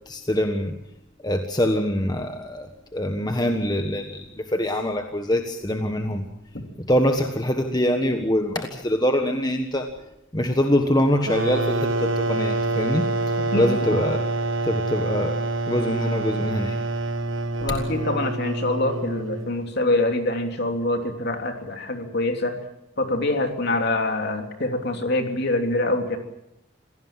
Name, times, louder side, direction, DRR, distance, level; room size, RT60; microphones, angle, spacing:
voice 1, 0.1-0.8 1.2-6.3 6.9-9.9 10.3-13.1 13.5-14.2 14.6-15.4 15.7-16.8, left 1 dB, 20° left, 5 dB, 1.4 m, -24 dB
sound 1, 11.2-19.7, right 2 dB, 70° right, 1.4 m, -26 dB
voice 2, 17.6-22.6 23.0-26.2, left 2 dB, 50° left, 4 dB, 3.2 m, -25 dB
26.5 x 17.5 x 7.5 m, 0.84 s
head